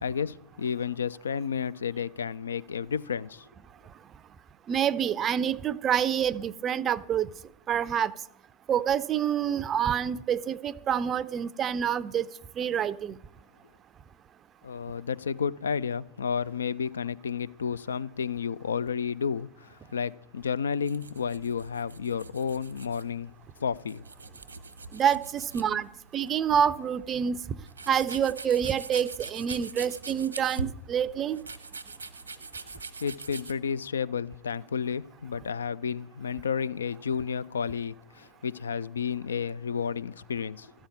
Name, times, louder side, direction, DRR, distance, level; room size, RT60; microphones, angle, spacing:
voice 1, 0.0-3.5 14.6-23.3 23.6-24.0 32.7-40.7, left 6 dB, 70° left, 0.3 m, -31 dB
voice 2, 4.7-7.3 7.7-8.1 8.7-12.3 12.6-13.2 24.9-27.4 27.9-31.4, right 8 dB, 25° right, 0.4 m, -27 dB
sound 1, 20.8-33.5, right 3 dB, 80° right, 1.0 m, -43 dB
13.5 x 5.6 x 8.3 m
figure-of-eight pair, 90°, 0 cm